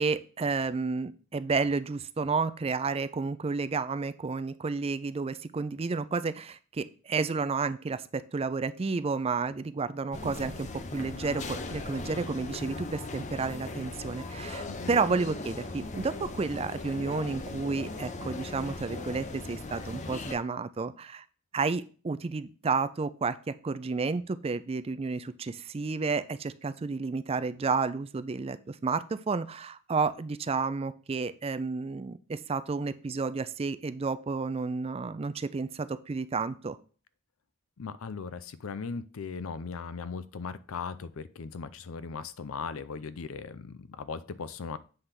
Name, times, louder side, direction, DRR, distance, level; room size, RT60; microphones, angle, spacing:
voice 1, 0.0-21.2 21.5-36.8, right 4 dB, 30° right, 13 dB, 0.4 m, -31 dB
sound 1, 10.1-20.4, left 2 dB, 35° left, 0.7 m, -38 dB
voice 2, 14.7-15.0 37.8-44.8, left 5 dB, 80° left, 14 dB, 0.5 m, -38 dB
7.8 x 3.4 x 5.7 m, 0.38 s
head